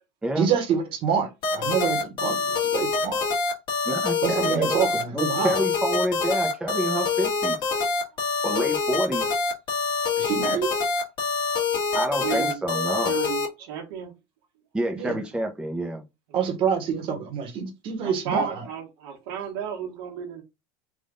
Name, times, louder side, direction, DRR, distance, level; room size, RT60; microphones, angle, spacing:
voice 1, 0.4-3.2 4.2-5.6 10.2-10.7 14.9-15.2 16.3-18.6, right 7 dB, 45° right, 1.2 m, -27 dB
sound 1, 1.4-13.5, left 4 dB, 40° left, 1.5 m, -25 dB
voice 2, 3.9-4.8 5.1-7.6 8.4-9.3 11.9-13.1 14.7-16.0, right 1 dB, 5° right, 0.7 m, -28 dB
voice 3, 12.2-12.6 13.0-14.1 18.0-20.4, right 8 dB, 75° right, 1.4 m, -33 dB
3.7 x 2.5 x 3.8 m
supercardioid pair, 130°, 12 cm